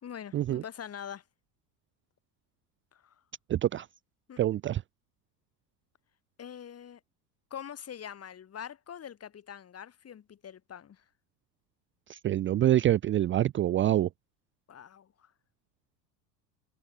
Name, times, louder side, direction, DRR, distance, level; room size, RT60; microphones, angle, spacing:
voice 1, 0.0-1.2 2.9-3.2 4.3-4.4 6.4-7.0 7.5-11.0 14.7-15.3, left 8 dB, 30° left, 3.7 m, -44 dB
voice 2, 3.5-3.9 4.4-4.8 12.1-14.1, right 12 dB, 25° right, 0.7 m, -26 dB
figure-of-eight pair, 70°, 49 cm